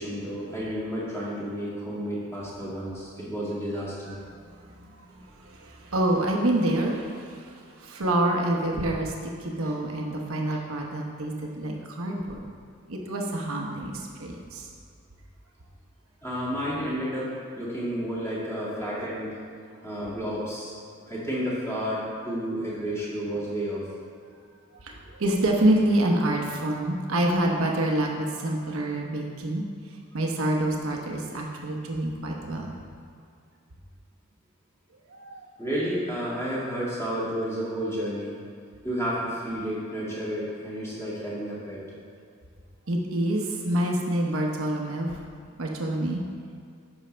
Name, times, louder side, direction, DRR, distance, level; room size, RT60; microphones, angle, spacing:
voice 1, 0.0-4.2 16.2-19.4 19.8-20.7 21.1-23.8 35.6-38.4 38.8-41.8, equal, 10° left, -8 dB, 2.2 m, -31 dB
voice 2, 4.6-9.1 9.4-12.4 12.9-14.7 24.8-32.7 35.1-35.4 42.9-45.2 45.6-46.2, right 1 dB, 70° right, 0 dB, 0.9 m, -27 dB
10.5 x 6.3 x 3.4 m, 2.3 s
head